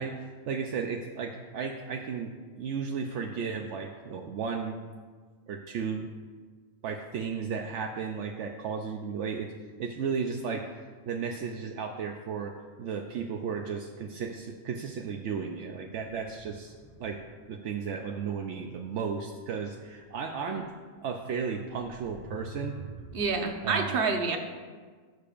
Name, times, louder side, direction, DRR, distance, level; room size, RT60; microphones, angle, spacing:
voice 1, 0.0-4.8 5.5-6.1 6.8-9.5 9.8-16.7 17.0-17.2 17.5-20.7 21.0-22.8 23.6-23.9, right 6 dB, 75° right, 3 dB, 0.9 m, -34 dB
sound 1, 15.9-17.5 20.6-20.7 21.6-23.4, right 1 dB, 80° left, 3.4 m, -46 dB
voice 2, 23.1-24.4, right 4 dB, 50° right, 3 dB, 1.1 m, -27 dB
16.0 x 6.8 x 2.5 m, 1.5 s
omnidirectional pair, 1.3 m